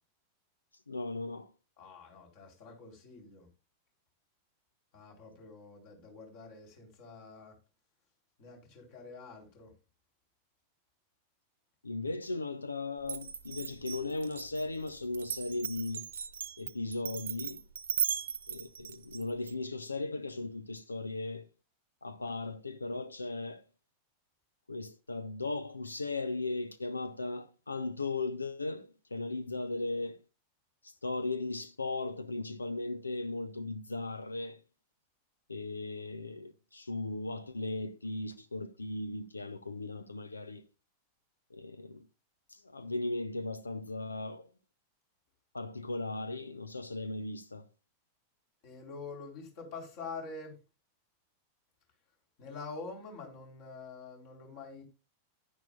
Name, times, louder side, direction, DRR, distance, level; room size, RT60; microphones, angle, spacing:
voice 1, 0.9-1.5 11.8-16.0 16.6-17.6 18.5-21.5 22.0-23.6 24.7-30.2 30.8-34.6 35.5-40.7 41.5-42.0 42.5-44.5 45.5-47.7, left 2 dB, 80° left, 0.7 m, -37 dB
voice 2, 1.8-3.5 4.9-7.6 8.4-9.7 48.6-50.6 52.4-54.8, left 4 dB, 50° left, 4.4 m, -46 dB
Glass, 13.0-19.5, right 7 dB, 70° right, 1.0 m, -37 dB
11.0 x 10.5 x 2.5 m
figure-of-eight pair, 90°, 0 cm